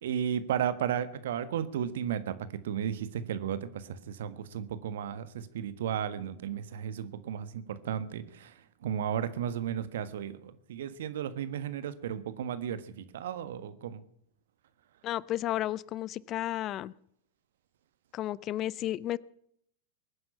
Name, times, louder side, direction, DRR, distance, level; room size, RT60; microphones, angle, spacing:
voice 1, 0.0-14.0, right 9 dB, 65° right, 13 dB, 1.4 m, -34 dB
voice 2, 15.0-16.9 18.1-19.2, left 14 dB, 40° left, 23 dB, 0.5 m, -32 dB
22.5 x 9.6 x 5.6 m, 0.69 s
figure-of-eight pair, 95°, 0 cm